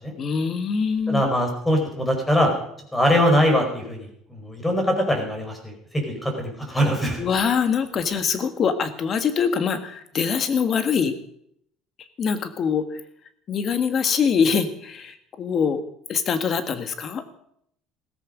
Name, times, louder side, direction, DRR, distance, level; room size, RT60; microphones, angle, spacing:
voice 1, 0.2-1.2 7.2-11.1 12.2-12.8 13.5-15.8 16.1-17.2, left 6 dB, 40° left, 10 dB, 1.7 m, -23 dB
voice 2, 1.1-2.5 2.9-7.2, equal, 10° left, 4 dB, 5.1 m, -22 dB
16.0 x 14.0 x 5.3 m, 0.70 s
cardioid pair, 120°, 0 cm